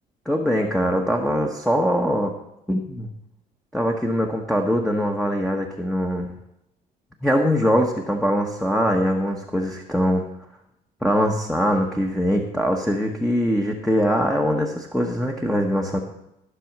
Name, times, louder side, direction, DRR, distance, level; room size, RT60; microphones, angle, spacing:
voice 1, 0.3-2.3 2.7-3.1 3.7-6.3 7.2-10.3 11.0-16.0, equal, 5° left, 1 dB, 1.2 m, -22 dB
13.5 x 6.2 x 6.1 m, 0.84 s
cardioid pair, 110°, 17 cm